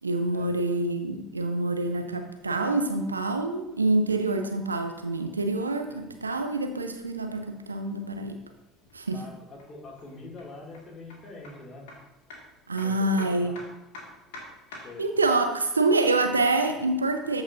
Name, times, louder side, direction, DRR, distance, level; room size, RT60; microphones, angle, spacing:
voice 1, 0.0-8.4 8.9-9.2 12.7-13.5 15.0-17.4, right 2 dB, 85° right, 6 dB, 0.7 m, -26 dB
sound 1, 1.8-15.1, left 2 dB, 65° left, 2.1 m, -52 dB
voice 2, 9.1-11.9 12.7-13.6 14.8-15.1, left 2 dB, 30° left, -2 dB, 2.5 m, -44 dB
14.0 x 5.0 x 2.7 m, 0.97 s
figure-of-eight pair, 65°, 0 cm